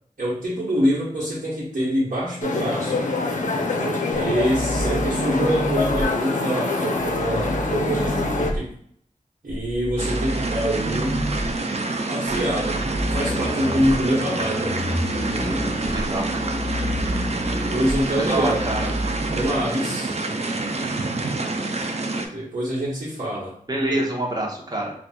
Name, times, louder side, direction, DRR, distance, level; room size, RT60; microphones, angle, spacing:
voice 1, 0.2-3.0 3.8-8.7 9.4-11.2 12.1-14.8 17.7-18.6 19.3-20.1 22.3-23.5 23.9-24.0, equal, 65° right, -8 dB, 1.2 m, -25 dB
sound 1, 2.4-8.5, left 3 dB, 60° left, 0.5 m, -25 dB
voice 2, 3.9-4.3 15.4-16.2 18.2-18.9 23.7-24.9, right 1 dB, 30° right, -2 dB, 0.9 m, -27 dB
sound 2, 4.1-6.0 6.9-8.6 9.5-11.5 12.3-19.5, equal, 5° left, 0.5 m, -29 dB
sound 3, 10.0-22.3, right 2 dB, 50° right, 0.4 m, -27 dB
4.0 x 2.4 x 2.3 m, 0.65 s
wide cardioid pair, 60°, 14 cm